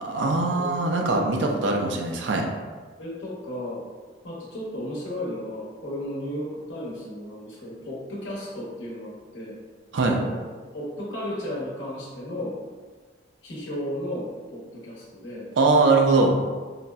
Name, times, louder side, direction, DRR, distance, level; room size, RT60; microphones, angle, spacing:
voice 1, 0.0-2.5 9.9-10.2 15.6-16.3, right 3 dB, 75° right, 2 dB, 0.4 m, -21 dB
voice 2, 0.6-0.9 1.3-1.4 3.0-3.8 4.2-9.6 10.1-12.6 13.4-15.5, left 1 dB, 80° left, -5 dB, 0.9 m, -34 dB
3.9 x 2.0 x 2.3 m, 1.4 s
head